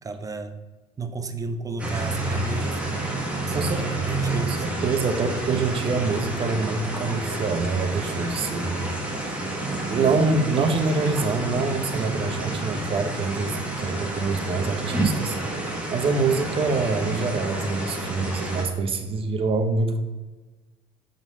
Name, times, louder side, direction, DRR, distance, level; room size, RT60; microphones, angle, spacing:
voice 1, 0.0-0.6 1.0-2.9 3.5-4.8, right 3 dB, 25° right, 8 dB, 0.6 m, -33 dB
sound 1, 1.8-18.6, right 2 dB, 10° right, 1.5 m, -29 dB
voice 2, 3.5-3.8 4.4-8.9 9.2-9.4 9.9-15.4 15.9-20.0, right 4 dB, 40° right, 6 dB, 1.0 m, -25 dB
6.1 x 3.9 x 5.4 m, 1.3 s
cardioid pair, 110°, 14 cm